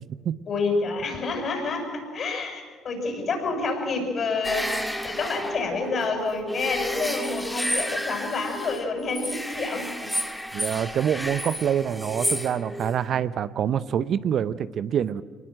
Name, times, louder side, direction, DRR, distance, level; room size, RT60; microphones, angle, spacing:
voice 1, 0.5-10.1, left 3 dB, 50° left, 4 dB, 6.8 m, -28 dB
sound 1, 4.4-8.9 9.1-13.2, equal, 5° left, 2.6 m, -31 dB
voice 2, 10.5-15.2, right 9 dB, 55° right, 15 dB, 0.7 m, -26 dB
24.0 x 19.5 x 7.7 m, 1.6 s
hypercardioid pair, 55°, 0 cm